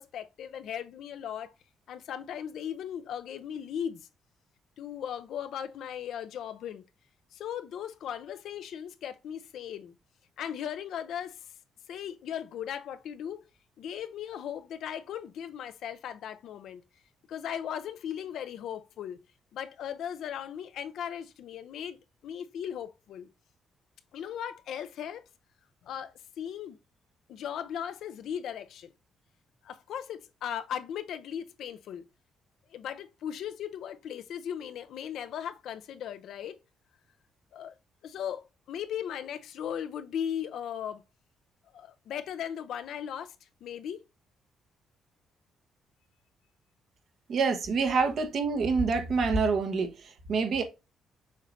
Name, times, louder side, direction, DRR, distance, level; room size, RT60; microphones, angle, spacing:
voice 1, 0.0-1.5 1.9-4.1 4.8-6.8 7.3-10.0 10.4-11.5 11.9-13.4 13.8-16.8 17.3-19.2 19.5-22.0 22.2-23.3 24.1-25.2 25.8-26.8 27.3-28.9 29.6-32.1 32.7-36.6 37.5-37.7 38.0-41.0 41.7-43.3 43.6-44.0, left 9 dB, 75° left, 0.5 m, -37 dB
voice 2, 47.3-50.6, right 4 dB, 60° right, 1.0 m, -27 dB
6.5 x 3.1 x 2.6 m
cardioid pair, 90°, 0 cm